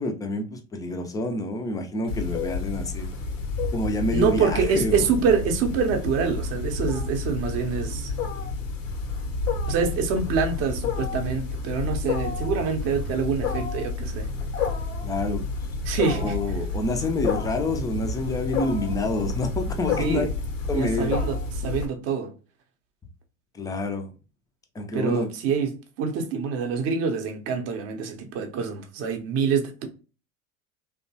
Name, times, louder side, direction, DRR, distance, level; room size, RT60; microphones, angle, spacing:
voice 1, 0.0-3.1 3.7-5.0 5.4-5.5 15.0-15.4 16.1-20.2 20.7-21.2 23.5-24.1 24.7-25.3, left 2 dB, 10° left, 0.3 m, -28 dB
Wild animals, 2.1-21.9, left 4 dB, 80° left, 0.7 m, -30 dB
voice 2, 4.1-8.1 9.7-14.3 15.9-16.4 20.0-20.3 20.7-22.3 24.9-25.7 26.0-29.9, right 5 dB, 40° right, 0.6 m, -26 dB
2.8 x 2.1 x 2.6 m
figure-of-eight pair, 80°, 38 cm